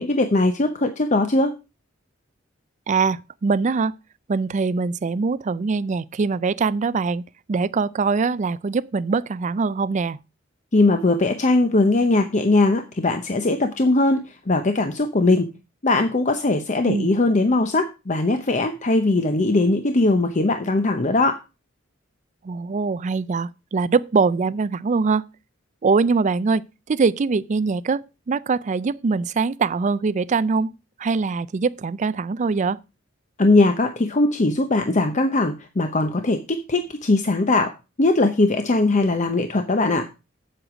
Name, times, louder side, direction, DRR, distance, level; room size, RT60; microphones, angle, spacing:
voice 1, 0.0-1.5 10.7-15.5 15.8-21.4 33.4-37.7 38.0-40.1, left 2 dB, 40° left, 0.8 m, -20 dB
voice 2, 2.9-3.9 4.3-10.2 16.9-17.1 22.4-25.2 25.8-26.6 26.9-28.0 28.3-30.7 31.0-32.8, right 4 dB, 40° right, 0.4 m, -22 dB
8.0 x 7.8 x 5.0 m
head